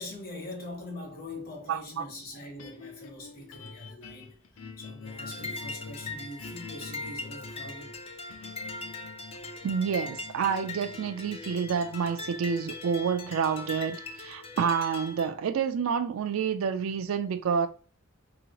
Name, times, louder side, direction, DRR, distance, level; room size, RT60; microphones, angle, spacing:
voice 1, 0.0-4.3 4.8-8.0, left 2 dB, 45° left, 1.0 m, -43 dB
voice 2, 1.7-2.1 9.6-17.7, right 6 dB, 75° right, 0.3 m, -29 dB
sound 1, 2.6-14.9, left 5 dB, 80° left, 0.5 m, -47 dB
sound 2, 5.0-15.3, left 3 dB, 25° left, 0.4 m, -40 dB
2.8 x 2.7 x 2.9 m
head